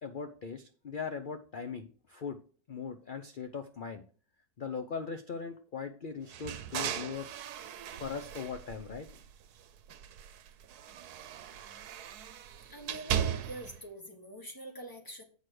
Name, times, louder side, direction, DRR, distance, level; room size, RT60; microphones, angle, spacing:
voice 1, 0.0-2.4 2.7-4.0 4.6-7.4 8.0-9.1, left 6 dB, 50° left, 8 dB, 0.6 m, -39 dB
sound 1, 6.3-9.5 9.8-13.8, right 9 dB, 85° right, 1.2 m, -38 dB
voice 2, 12.7-15.2, right 1 dB, 15° left, 3 dB, 1.4 m, -44 dB
8.3 x 6.1 x 4.8 m, 0.40 s
omnidirectional pair, 1.6 m